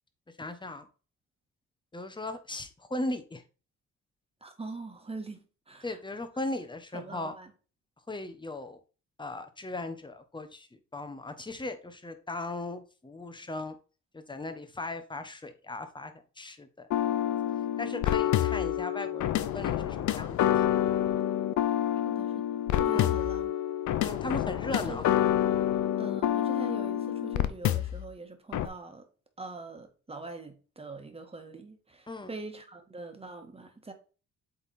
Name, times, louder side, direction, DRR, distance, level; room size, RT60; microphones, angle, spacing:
voice 1, 0.4-0.9 1.9-3.4 5.8-7.3 8.1-8.8 9.2-13.7 14.1-16.9 17.8-20.7 22.9-23.1 24.0-25.0 32.1-32.3, left 2 dB, 15° left, 1.2 m, -38 dB
voice 2, 4.4-6.0 6.9-7.5 22.0-22.4 22.7-23.5 24.7-25.7 26.0-29.1 29.4-33.9, right 3 dB, 20° right, 1.7 m, -43 dB
sound 1, 16.9-28.1 28.5-28.7, left 11 dB, 75° left, 0.7 m, -28 dB
8.0 x 3.7 x 4.3 m
cardioid pair, 90°, 30 cm